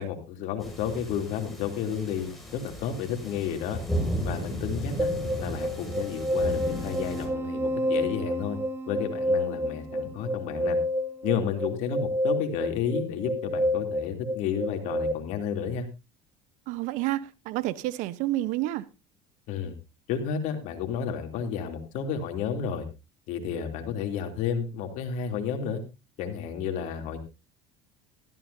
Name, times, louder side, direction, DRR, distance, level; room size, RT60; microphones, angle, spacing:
voice 1, 0.0-3.8 4.2-5.1 5.4-8.6 8.9-10.8 11.2-15.9 19.5-19.7 20.1-22.8 23.3-25.8 26.2-27.2, left 7 dB, 70° left, 3.0 m, -31 dB
sound 1, 0.6-7.3, equal, ahead, 5.8 m, -35 dB
sound 2, 5.0-15.1, left 1 dB, 20° right, 1.6 m, -29 dB
voice 2, 16.7-18.9, right 16 dB, 70° right, 0.9 m, -29 dB
16.0 x 14.0 x 2.7 m
supercardioid pair, 105°, 13 cm